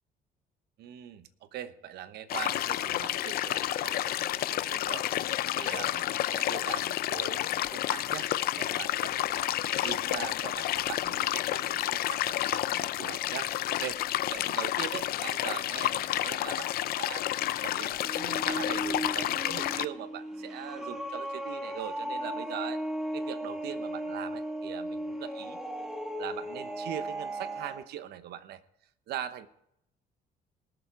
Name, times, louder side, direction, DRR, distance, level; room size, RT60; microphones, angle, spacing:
voice 1, 0.8-5.2 5.5-9.5 9.8-14.0 14.3-17.3 17.6-22.8 23.1-25.6 26.2-28.6 29.1-29.5, right 11 dB, 70° right, 12 dB, 0.9 m, -41 dB
sound 1, 2.3-19.9, left 13 dB, 65° left, 0.5 m, -30 dB
sound 2, 17.4-27.8, right 1 dB, 5° right, 1.6 m, -36 dB
19.5 x 6.9 x 4.6 m, 0.75 s
cardioid pair, 110°, 17 cm